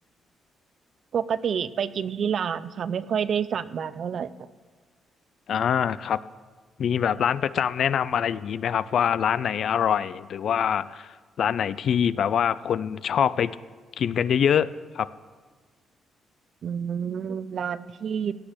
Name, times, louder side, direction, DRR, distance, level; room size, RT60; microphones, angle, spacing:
voice 1, 1.1-4.3 16.6-18.3, right 7 dB, 55° right, 16 dB, 0.5 m, -28 dB
voice 2, 5.5-6.2 6.8-13.5 14.0-14.7 14.9-15.1, left 8 dB, 60° left, 17 dB, 0.4 m, -24 dB
16.5 x 6.1 x 7.9 m, 1.4 s
cardioid pair, 120°, 0 cm